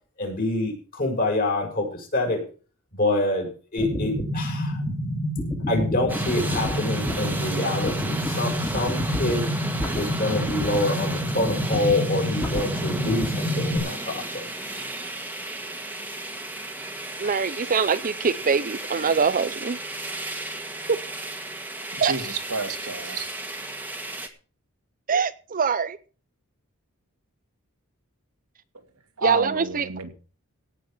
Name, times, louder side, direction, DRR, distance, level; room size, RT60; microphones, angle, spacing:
voice 1, 0.2-2.4 3.0-4.8 5.7-9.5 9.9-14.4, left 2 dB, 40° left, 6.7 m, -26 dB
sound 1, 3.8-13.8, equal, 15° left, 3.0 m, -28 dB
sound 2, 6.1-24.3, right 2 dB, 10° right, 1.9 m, -34 dB
voice 2, 17.2-19.8 20.9-21.0 22.0-22.1 25.1-26.0 29.2-29.9, right 5 dB, 40° right, 0.6 m, -23 dB
voice 3, 21.9-23.3 29.2-30.1, right 3 dB, 85° right, 2.4 m, -30 dB
17.5 x 6.3 x 7.1 m
head